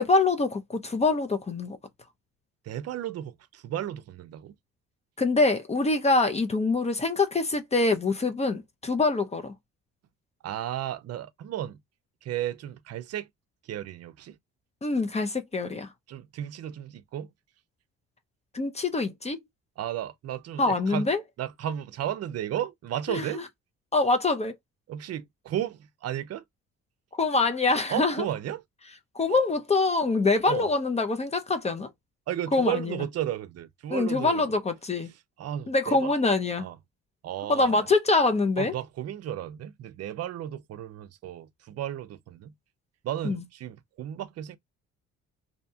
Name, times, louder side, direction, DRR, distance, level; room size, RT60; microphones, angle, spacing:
voice 1, 0.0-1.8 5.2-9.5 14.8-15.9 18.5-19.4 20.6-21.2 23.1-23.4 23.9-24.6 27.1-28.3 29.1-31.9 32.5-33.0 33.9-35.1 35.7-36.7 37.5-38.7 43.2-43.4, left 3 dB, 20° left, 0.5 m, -25 dB
voice 2, 2.6-4.5 10.4-11.8 12.2-13.3 13.7-14.4 16.1-17.3 19.8-21.1 21.4-23.4 24.9-26.4 27.9-28.6 29.3-29.4 30.4-30.7 32.3-34.4 35.4-36.1 36.6-36.8 37.2-37.9 38.6-42.5 43.0-44.6, right 11 dB, 55° right, 0.5 m, -34 dB
2.7 x 2.1 x 2.6 m
cardioid pair, 90°, 30 cm